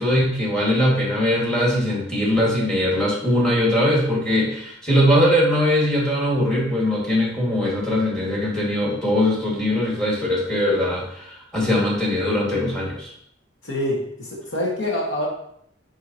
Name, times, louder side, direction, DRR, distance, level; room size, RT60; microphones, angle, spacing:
voice 1, 0.0-13.1, left 1 dB, 5° left, -4 dB, 2.2 m, -21 dB
voice 2, 13.6-15.3, left 1 dB, 90° left, -3 dB, 2.0 m, -26 dB
9.6 x 3.7 x 3.0 m, 0.70 s
head